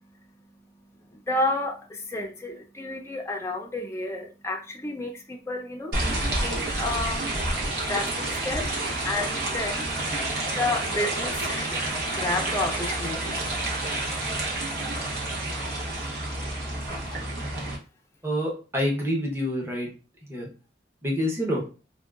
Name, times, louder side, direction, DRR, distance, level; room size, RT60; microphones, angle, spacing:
voice 1, 1.1-7.3 7.9-8.7 9.0-10.3 10.6-11.8 12.1-13.4, left 2 dB, 15° left, 0.4 m, -31 dB
sound 1, 5.9-17.8, right 2 dB, 55° right, 0.9 m, -29 dB
voice 2, 18.2-19.9 20.3-20.5 21.0-21.6, equal, 15° right, 0.7 m, -27 dB
3.6 x 2.2 x 2.3 m
head